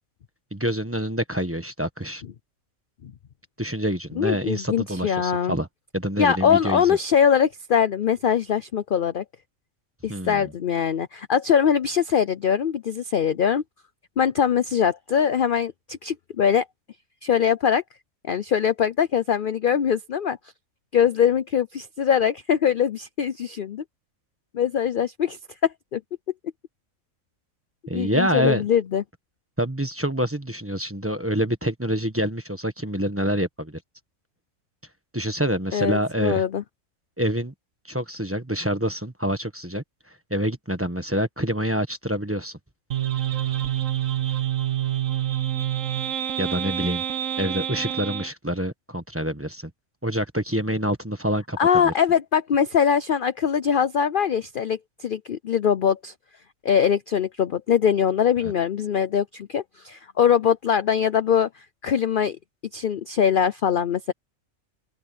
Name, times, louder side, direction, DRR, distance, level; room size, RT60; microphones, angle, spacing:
voice 1, 0.5-2.2 3.6-5.7 5.9-7.1 10.1-10.5 27.9-28.6 29.6-33.8 35.1-36.4 37.2-37.5 37.8-39.8 40.3-42.6 46.4-47.0 47.4-49.7 50.0-51.6 51.8-51.9, equal, 10° right, 1.3 m, -26 dB
voice 2, 4.2-5.6 6.2-9.2 10.0-13.6 14.2-16.7 17.2-17.8 18.2-20.4 20.9-23.8 24.5-26.0 27.9-29.0 35.7-36.6 51.6-56.1 56.6-62.4 62.7-64.1, left 8 dB, 50° left, 0.7 m, -22 dB
sound 1, 42.9-48.3, right 11 dB, 65° right, 1.4 m, -27 dB
open air
omnidirectional pair, 1.4 m